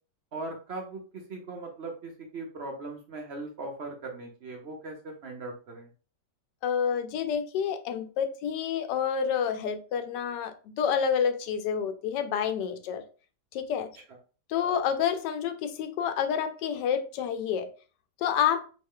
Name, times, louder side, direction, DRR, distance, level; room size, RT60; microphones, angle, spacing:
voice 1, 0.3-5.9, right 2 dB, 55° right, 0.7 m, -39 dB
voice 2, 6.6-13.0 13.5-13.9 14.5-17.7 18.2-18.6, left 8 dB, 85° left, 1.2 m, -28 dB
3.1 x 3.1 x 3.6 m
omnidirectional pair, 1.8 m